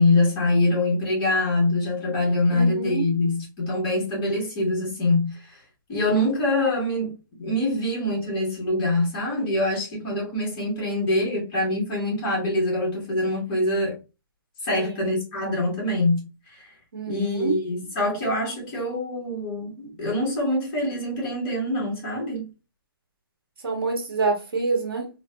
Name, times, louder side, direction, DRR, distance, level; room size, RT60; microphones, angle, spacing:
voice 1, 0.0-5.6 5.9-7.1 7.4-13.9 14.6-16.7 17.1-22.5, left 2 dB, 20° left, 1.7 m, -24 dB
voice 2, 2.5-3.1 14.7-14.9 16.9-17.5 23.6-25.1, right 4 dB, 85° right, 1.5 m, -27 dB
3.8 x 2.5 x 2.3 m
hypercardioid pair, 170°, 12 cm